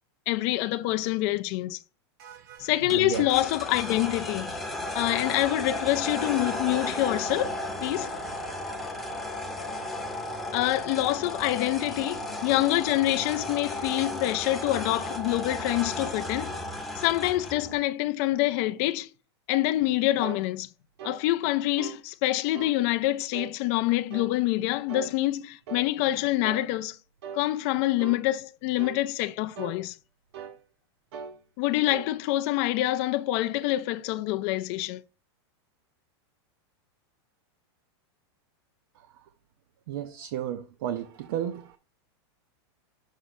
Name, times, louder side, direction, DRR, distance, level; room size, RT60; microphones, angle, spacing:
voice 1, 0.3-1.8 2.6-4.5 4.9-8.1 10.5-16.5 17.0-19.1 19.5-20.7 21.0-27.0 27.3-30.0 31.6-35.0, left 16 dB, 35° left, 0.3 m, -26 dB
voice 2, 2.2-3.4 39.9-41.8, right 10 dB, 55° right, 0.6 m, -34 dB
sound 1, 2.9-17.7, left 1 dB, ahead, 0.8 m, -34 dB
sound 2, 20.2-20.4 21.0-21.2 21.8-22.0 22.5-22.8 23.3-23.6 24.1-24.4 24.9-25.1 25.7-25.9 26.4-26.7 27.2-27.5 28.0-28.2 28.8-29.0 29.6-29.8 30.3-30.6 31.1-31.4 31.9-32.1, right 7 dB, 70° right, 1.1 m, -40 dB
6.5 x 3.0 x 5.9 m
supercardioid pair, 170°, 14 cm